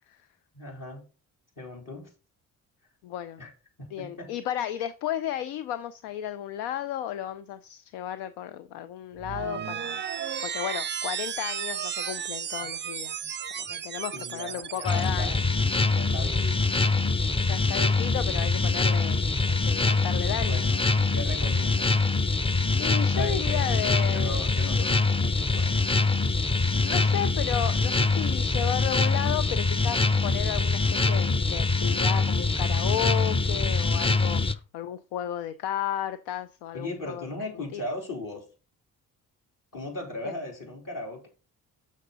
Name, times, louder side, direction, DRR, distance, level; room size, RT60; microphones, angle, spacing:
voice 1, 0.5-1.1 1.6-2.1 3.4-3.5 3.8-4.3 14.1-15.3 15.9-16.7 20.4-22.0 23.0-23.8 24.1-25.9 36.7-38.5 39.7-41.3, left 1 dB, 50° left, 3.7 m, -38 dB
voice 2, 3.0-3.4 3.9-15.4 17.4-20.7 22.8-24.9 26.8-37.3 37.7-37.8 40.2-40.3, left 11 dB, 80° left, 0.6 m, -34 dB
sound 1, 9.2-15.1, right 8 dB, 30° right, 0.5 m, -34 dB
sound 2, 14.9-34.5, left 3 dB, 15° left, 0.6 m, -24 dB
6.5 x 6.3 x 4.0 m
hypercardioid pair, 50°, 40 cm